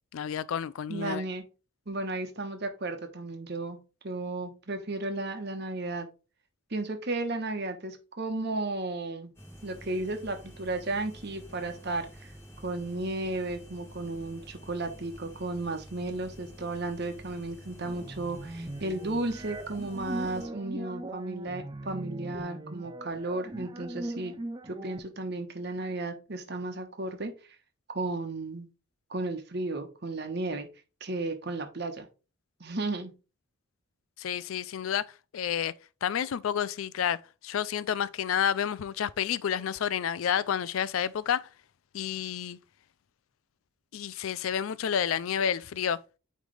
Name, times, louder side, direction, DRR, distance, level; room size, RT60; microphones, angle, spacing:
voice 1, 0.1-1.3 34.2-35.7 36.0-41.5 41.9-42.6 43.9-46.0, left 8 dB, 85° left, 0.4 m, -30 dB
voice 2, 0.9-1.4 1.9-3.8 4.0-6.1 6.7-9.3 9.6-12.3 12.6-24.4 24.7-27.3 27.9-28.7 29.1-30.7 31.0-32.1 32.6-33.1, right 2 dB, 55° right, 1.1 m, -34 dB
sound 1, 9.3-20.5, equal, 10° left, 2.1 m, -49 dB
sound 2, 17.8-25.0, right 1 dB, 20° right, 0.4 m, -40 dB
9.1 x 3.2 x 3.3 m
head